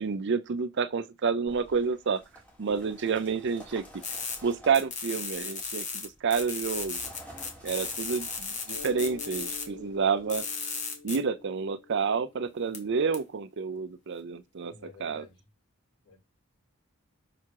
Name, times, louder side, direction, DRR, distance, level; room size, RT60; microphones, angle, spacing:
voice 1, 0.0-2.2 2.6-4.0 4.4-7.0 7.6-10.4 11.0-14.7 15.0-15.3, right 5 dB, 55° right, 0.5 m, -29 dB
sound 1, 1.5-10.4, equal, 5° left, 1.9 m, -52 dB
sound 2, 4.0-4.4 4.7-6.1 6.3-9.6 10.3-11.2 12.7-12.8 13.1-13.2, left 5 dB, 35° left, 1.3 m, -35 dB
Mallet percussion, 8.7-13.1, left 4 dB, 50° left, 1.4 m, -48 dB
voice 2, 14.7-15.5 16.0-16.2, left 4 dB, 80° left, 4.2 m, -51 dB
5.8 x 3.6 x 4.6 m
head